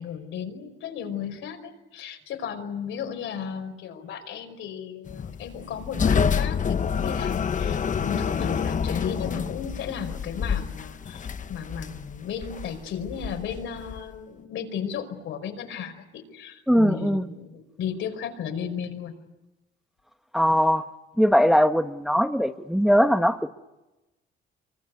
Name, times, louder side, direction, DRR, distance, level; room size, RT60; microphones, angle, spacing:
voice 1, 0.0-19.1, left 7 dB, 85° left, 5 dB, 5.1 m, -35 dB
sound 1, 5.1-14.2, left 6 dB, 40° left, 1.0 m, -28 dB
voice 2, 16.7-17.2 20.3-20.8 21.2-23.5, equal, ahead, 7 dB, 1.3 m, -20 dB
25.5 x 24.0 x 9.6 m, 1.0 s
cardioid pair, 90°, 20 cm